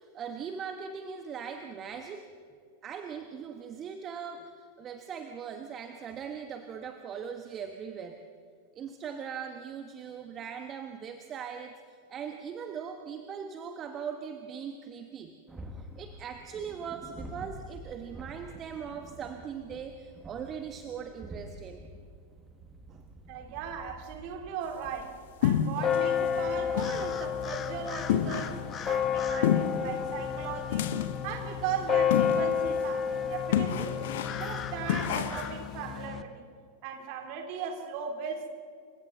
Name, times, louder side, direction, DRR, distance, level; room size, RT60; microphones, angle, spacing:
voice 1, 0.0-2.3 2.8-8.2 8.7-11.7 12.1-15.4 15.8-21.8 22.9-23.0, right 7 dB, 30° right, 6 dB, 1.4 m, -40 dB
sound 1, 15.5-35.0, right 1 dB, 15° right, 2.0 m, -50 dB
voice 2, 23.3-34.0 34.3-36.4 36.8-38.5, right 6 dB, 45° right, 4 dB, 3.3 m, -38 dB
sound 2, 25.4-26.0 26.4-26.5 26.8-27.0 27.4-27.5 28.1-28.7 29.4-29.9 30.7-31.3 32.1-32.5 32.9-33.0 33.5-34.5 34.9-35.6, left 9 dB, 55° left, 1.2 m, -28 dB
sound 3, 25.8-36.2, left 7 dB, 25° left, 1.3 m, -31 dB
28.5 x 25.0 x 4.0 m, 2.1 s
figure-of-eight pair, 90°, 0 cm